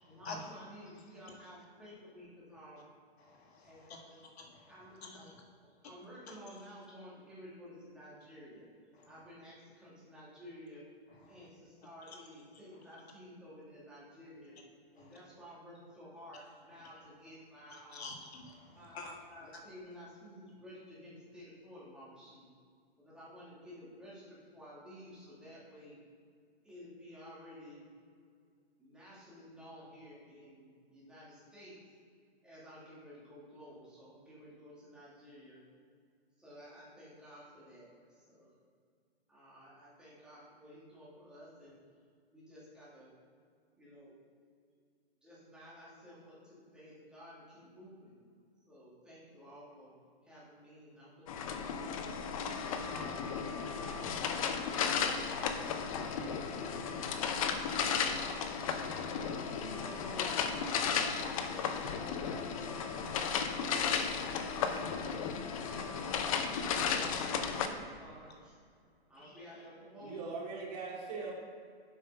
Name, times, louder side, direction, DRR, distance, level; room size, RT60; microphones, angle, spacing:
voice 1, 0.0-2.9 3.6-4.2 4.7-5.4 5.6-8.7 9.0-10.9 11.3-14.5 14.9-18.2 18.8-22.5 23.0-26.0 26.6-27.8 28.8-31.8 32.4-35.6 36.4-38.5 39.3-41.8 42.3-43.1 43.8-44.2 45.2-48.1 48.7-49.9 50.2-52.3 52.7-54.3 55.8-57.8 58.3-60.3 60.6-64.2 64.6-66.7 67.0-68.6 69.1-70.4, equal, 5° right, -9 dB, 2.5 m, -53 dB
voice 2, 3.2-4.7 5.0-5.2 9.0-9.1 11.3-11.4 15.0-15.1 17.7-19.1 69.2-69.3, left 3 dB, 70° left, 1 dB, 1.8 m, -48 dB
sound 1, 51.3-67.7, left 6 dB, 35° left, 0.6 m, -34 dB
voice 3, 70.0-71.4, right 4 dB, 40° right, -2 dB, 2.4 m, -40 dB
8.1 x 5.6 x 5.6 m, 2.2 s
hypercardioid pair, 155°, 32 cm